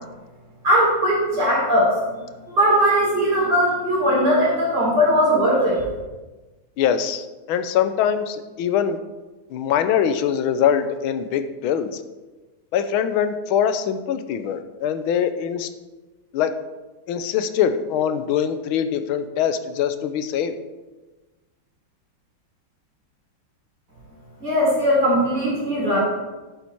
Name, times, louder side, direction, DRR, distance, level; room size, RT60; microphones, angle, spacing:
voice 1, 0.6-2.2 2.5-5.8 24.4-26.0, equal, 55° right, -6 dB, 4.6 m, -19 dB
voice 2, 6.8-9.0 9.5-12.0 12.7-15.7 16.3-16.5 17.1-20.5, left 8 dB, 85° left, 10 dB, 1.5 m, -23 dB
11.0 x 7.1 x 4.5 m, 1.2 s
omnidirectional pair, 2.2 m